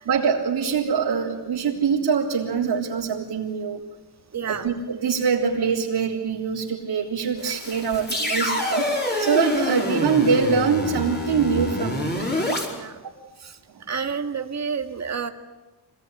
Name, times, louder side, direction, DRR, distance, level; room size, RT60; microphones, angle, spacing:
voice 1, 0.0-3.8 4.5-12.1 12.9-13.1, right 6 dB, 75° right, -6 dB, 3.6 m, -24 dB
voice 2, 4.3-4.7 7.4-7.5 12.7-13.0 13.4-13.6 13.9-15.3, right 6 dB, 40° right, 7 dB, 1.9 m, -30 dB
sound 1, 7.4-12.7, left 1 dB, 25° left, 5.1 m, -26 dB
26.0 x 19.0 x 9.9 m, 1.1 s
wide cardioid pair, 140°, 42 cm